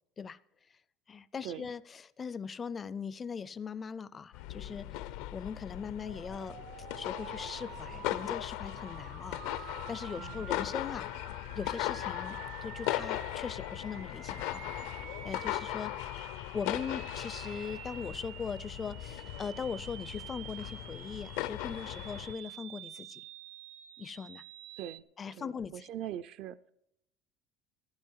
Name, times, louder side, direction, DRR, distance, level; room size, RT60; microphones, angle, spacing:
voice 1, 1.1-5.0 5.3-6.6 7.0-11.1 11.5-14.7 15.2-15.9 16.5-23.2 24.0-24.4 25.2-25.8, left 6 dB, 20° left, 18 dB, 0.4 m, -40 dB
sound 1, 4.3-22.3, left 15 dB, 70° left, 0.6 m, -38 dB
sound 2, 6.0-25.0, right 12 dB, 85° right, 1.1 m, -49 dB
voice 2, 25.4-26.6, right 11 dB, 50° right, 12 dB, 0.4 m, -41 dB
15.5 x 11.5 x 4.7 m, 0.78 s
cardioid pair, 170°, 0 cm